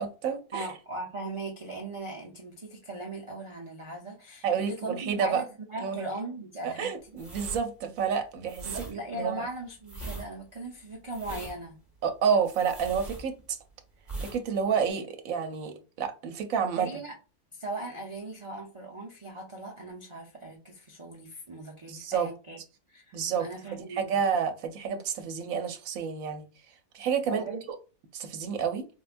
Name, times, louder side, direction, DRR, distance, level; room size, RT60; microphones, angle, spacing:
voice 1, 0.0-0.7 4.4-5.4 5.8-6.0 6.6-8.7 9.1-9.5 12.0-13.6 14.2-16.9 21.9-22.3 23.1-23.5 23.7-26.4 26.9-27.6 28.1-28.9, right 7 dB, 70° right, 1.0 m, -29 dB
voice 2, 0.5-7.2 8.6-11.8 16.8-17.1 17.5-22.6 22.9-24.1 27.2-27.6, right 2 dB, 55° right, 0.3 m, -39 dB
sound 1, 7.1-13.7 14.0-14.4 14.7-14.9, right 2 dB, ahead, 0.8 m, -41 dB
4.3 x 2.2 x 2.4 m
omnidirectional pair, 1.5 m